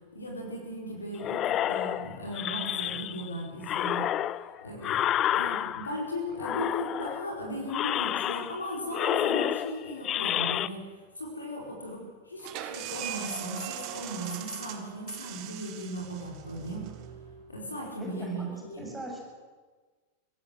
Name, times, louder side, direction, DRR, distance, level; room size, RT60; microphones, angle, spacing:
voice 1, 0.1-5.1 5.3-10.9 11.2-16.9 17.5-18.9, equal, 80° left, -1 dB, 4.8 m, -37 dB
sound 1, 1.2-3.3 3.6-6.0 6.4-7.3 7.7-8.7 8.9-10.7, left 12 dB, 30° left, 0.6 m, -30 dB
sound 2, 12.4-17.9, right 11 dB, 40° right, 1.8 m, -40 dB
voice 2, 18.0-19.2, right 1 dB, 10° right, 0 dB, 7.5 m, -41 dB
25.0 x 17.0 x 7.9 m, 1.4 s
figure-of-eight pair, 90°, 0 cm